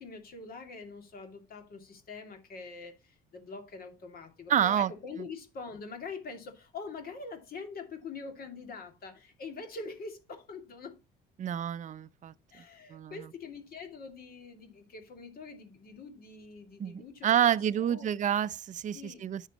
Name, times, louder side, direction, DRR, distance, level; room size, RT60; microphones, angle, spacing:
voice 1, 0.0-11.0 12.5-18.1 18.9-19.2, left 4 dB, 55° left, 2.5 m, -44 dB
voice 2, 4.5-4.9 11.4-12.3 12.9-13.3 16.8-19.4, right 9 dB, 40° right, 0.6 m, -28 dB
10.0 x 6.5 x 3.0 m
supercardioid pair, 70°, 19 cm